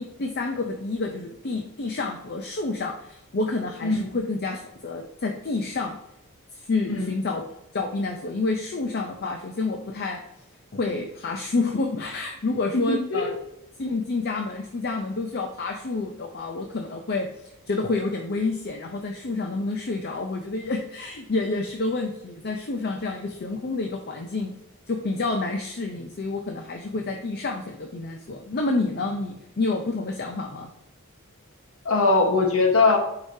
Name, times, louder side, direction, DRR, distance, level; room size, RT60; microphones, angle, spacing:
voice 1, 0.0-6.0 6.7-7.5 7.7-10.2 10.7-13.3 13.8-24.6 24.9-30.7, left 3 dB, 45° left, 4 dB, 0.6 m, -29 dB
voice 2, 3.8-4.1 6.9-7.1 12.7-13.3 31.8-33.0, left 3 dB, 65° left, 3 dB, 1.2 m, -21 dB
7.9 x 4.9 x 2.7 m, 0.83 s
head